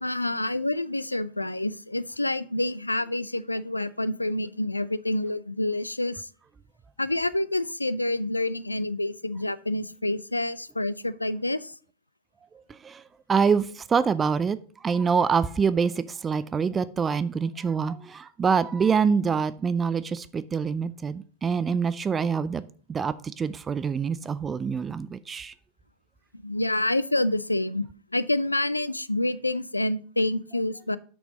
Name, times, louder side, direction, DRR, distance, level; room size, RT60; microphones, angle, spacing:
voice 1, 0.0-6.3 7.0-11.7 26.3-27.9 28.1-31.0, left 1 dB, 85° left, 0.3 m, -28 dB
voice 2, 12.7-13.0 13.3-14.6 14.8-25.5, right 6 dB, 20° right, 0.4 m, -25 dB
6.7 x 6.2 x 5.0 m
figure-of-eight pair, 90°, 0 cm